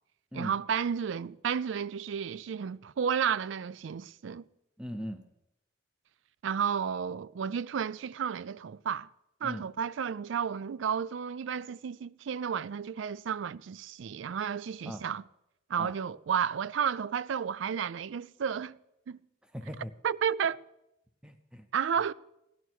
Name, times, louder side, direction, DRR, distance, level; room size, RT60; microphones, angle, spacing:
voice 1, 0.3-4.4 6.4-9.1 9.4-15.2 15.7-18.8 19.1-19.2 20.0-20.6 21.7-22.1, right 7 dB, 75° right, 0.4 m, -32 dB
voice 2, 4.8-5.2 9.4-9.7 14.9-15.0 15.8-15.9 19.5-19.9 21.2-21.7, equal, 5° right, 0.6 m, -39 dB
16.5 x 11.0 x 4.6 m
head